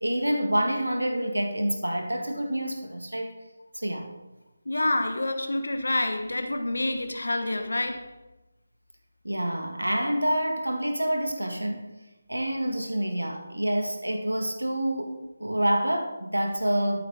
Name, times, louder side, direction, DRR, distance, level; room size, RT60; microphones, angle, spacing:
voice 1, 0.0-3.3 3.7-4.1 9.2-11.9 12.3-17.0, right 1 dB, 90° right, 5 dB, 1.5 m, -27 dB
voice 2, 4.7-8.1, left 2 dB, 75° left, 7 dB, 1.2 m, -27 dB
13.0 x 8.5 x 3.9 m, 1.0 s
figure-of-eight pair, 155°, 0 cm